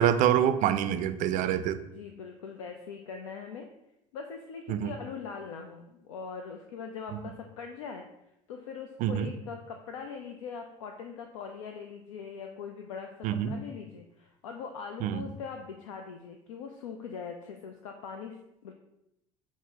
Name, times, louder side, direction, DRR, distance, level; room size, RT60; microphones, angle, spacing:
voice 1, 0.0-1.8 4.7-4.9 7.1-7.2 9.0-9.3 13.2-13.6 15.0-15.2, right 10 dB, 50° right, 11 dB, 0.4 m, -26 dB
voice 2, 1.7-3.7 4.1-8.1 8.5-18.3 18.6-18.7, left 6 dB, 80° left, 4 dB, 0.4 m, -41 dB
6.0 x 2.0 x 3.6 m, 0.86 s
hypercardioid pair, 70°, 17 cm